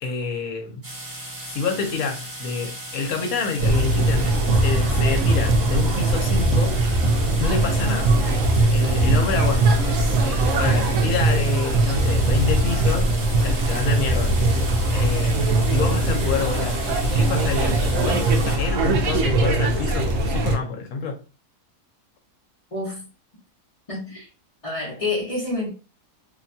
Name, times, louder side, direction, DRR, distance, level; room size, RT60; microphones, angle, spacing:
voice 1, 0.0-0.8 1.4-6.7 7.4-8.1 8.7-9.8 10.2-13.1 13.4-14.3 14.9-15.4 15.7-21.2, left 4 dB, 65° left, 1.0 m, -28 dB
sound 1, 0.8-18.6, right 1 dB, 25° right, 0.5 m, -36 dB
sound 2, 3.6-20.6, right 2 dB, 65° right, 0.8 m, -20 dB
voice 2, 22.7-23.1 23.9-24.3 24.6-25.7, left 2 dB, 35° left, 0.5 m, -28 dB
2.8 x 2.2 x 2.6 m
omnidirectional pair, 1.7 m